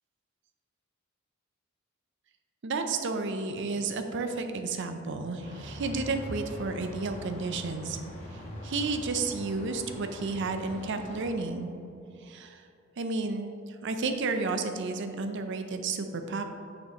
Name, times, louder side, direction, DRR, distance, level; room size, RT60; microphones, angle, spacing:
voice 1, 2.6-8.0 8.6-11.7 12.2-12.6 13.0-13.5 13.8-16.4, right 3 dB, 60° right, 7 dB, 0.5 m, -32 dB
sound 1, 5.4-11.3, equal, 30° left, 1.2 m, -43 dB
6.5 x 6.2 x 2.9 m, 2.7 s
head